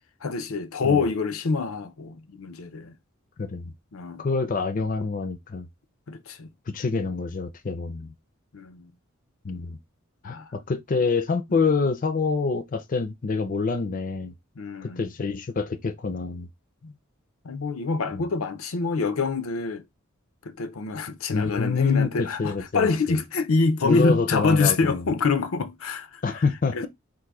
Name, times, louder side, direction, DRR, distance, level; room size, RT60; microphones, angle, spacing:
voice 1, 0.2-3.0 3.9-4.3 6.1-6.5 8.5-8.9 10.2-10.5 11.5-11.6 14.6-15.0 16.8-16.9 17.4-19.8 20.4-26.4 26.7-26.9, left 4 dB, 85° left, 0.6 m, -26 dB
voice 2, 3.4-3.7 4.2-5.7 6.7-8.1 9.4-9.8 10.2-14.3 14.8-16.5 18.1-18.2 21.3-23.2 23.8-25.0 26.2-26.9, left 4 dB, 40° left, 0.5 m, -26 dB
3.8 x 2.5 x 4.7 m
head